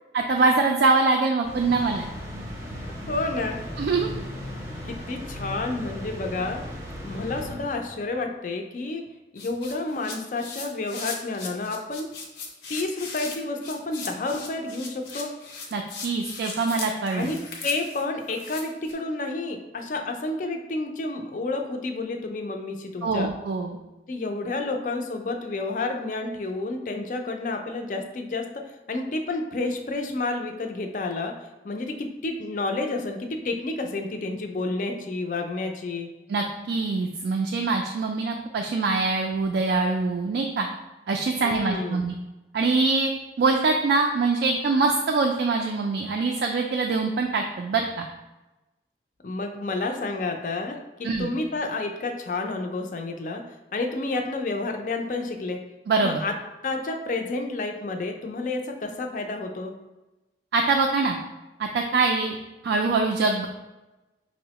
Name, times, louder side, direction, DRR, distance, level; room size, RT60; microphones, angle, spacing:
voice 1, 0.1-2.0 3.8-4.1 15.7-17.3 23.0-23.8 36.3-40.7 41.1-42.1 42.5-43.1 43.4-48.1 51.0-51.3 55.9-56.2 60.5-61.2 61.6-62.3 62.6-63.5, right 3 dB, 70° right, 2 dB, 0.3 m, -24 dB
sound 1, 1.4-8.1, equal, 15° right, 0.6 m, -37 dB
voice 2, 3.1-3.6 4.8-6.6 7.0-9.0 9.3-12.1 12.7-15.3 17.1-17.4 17.6-23.3 24.1-28.4 28.9-31.3 31.6-36.1 41.4-42.0 49.2-53.4 53.7-55.6 56.0-56.3 56.6-59.7, left 3 dB, 45° left, 4 dB, 0.4 m, -30 dB
sound 2, 9.4-18.9, left 4 dB, 85° left, 0.6 m, -38 dB
5.3 x 2.0 x 2.9 m, 1.1 s
head